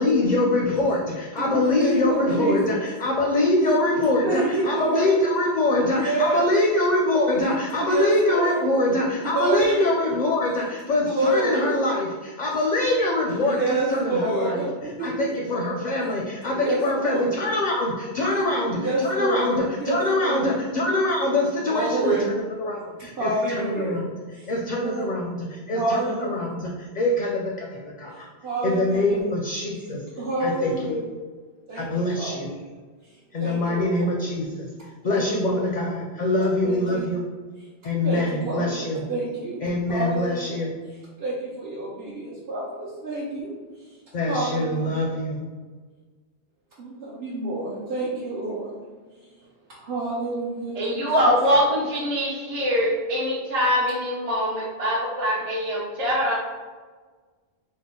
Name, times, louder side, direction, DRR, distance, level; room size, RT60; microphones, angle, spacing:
voice 1, 0.0-14.6 15.0-24.1 24.5-27.7 28.0-28.3 28.6-30.0 30.4-31.0 31.7-32.5 33.3-34.7 35.0-37.2 37.8-39.0 39.6-40.7 44.1-45.4, left 2 dB, 55° left, -1 dB, 0.5 m, -24 dB
voice 2, 1.4-2.8 4.2-5.1 5.9-6.5 7.8-8.6 9.2-9.9 10.9-11.7 13.3-15.1 16.5-17.3 18.7-20.5 21.7-22.2 23.0-24.0 24.3-24.5 24.8-25.1 25.7-26.5 28.4-29.2 30.2-31.0 31.7-32.3 33.4-34.2 35.0-35.7 36.6-37.1 38.0-40.6 41.2-43.5 44.3-45.2 46.8-48.8 49.8-51.3, right 2 dB, 70° right, -7 dB, 0.9 m, -28 dB
voice 3, 50.8-56.4, equal, 45° right, -6 dB, 0.6 m, -23 dB
3.6 x 2.0 x 3.6 m, 1.4 s
omnidirectional pair, 1.1 m